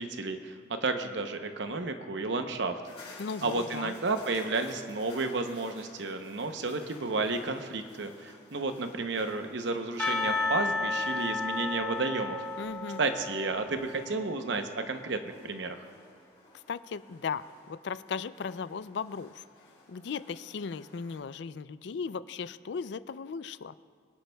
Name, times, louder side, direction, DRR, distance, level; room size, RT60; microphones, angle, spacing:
voice 1, 0.0-2.8 3.4-12.4 13.0-15.8, right 3 dB, 65° right, 7 dB, 0.8 m, -32 dB
sound 1, 2.8-21.2, left 2 dB, 30° left, 3.6 m, -54 dB
voice 2, 3.2-3.9 12.6-13.0 16.5-19.5 19.9-23.7, left 5 dB, 65° left, 15 dB, 0.4 m, -37 dB
Percussion / Church bell, 10.0-14.5, left 3 dB, 10° left, 1.2 m, -33 dB
23.5 x 10.5 x 2.3 m, 2.1 s
head